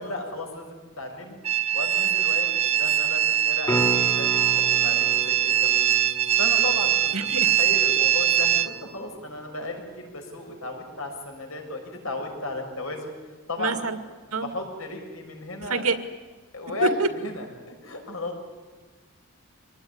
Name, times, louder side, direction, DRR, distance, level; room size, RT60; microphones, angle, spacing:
voice 1, 0.0-1.4 1.7-5.8 6.4-13.1 13.5-13.9 14.3-15.9 16.5-18.4, left 2 dB, 75° left, 3 dB, 6.5 m, -35 dB
sound 1, 1.4-8.7, right 11 dB, 30° right, 1.4 m, -22 dB
sound 2, 3.6-9.7 14.4-14.5, equal, 15° left, 2.0 m, -35 dB
voice 2, 7.1-7.5 13.6-14.0 14.3-14.5 15.7-16.0 16.8-17.1, right 4 dB, 85° right, 9 dB, 2.2 m, -25 dB
25.5 x 19.5 x 9.8 m, 1.4 s
head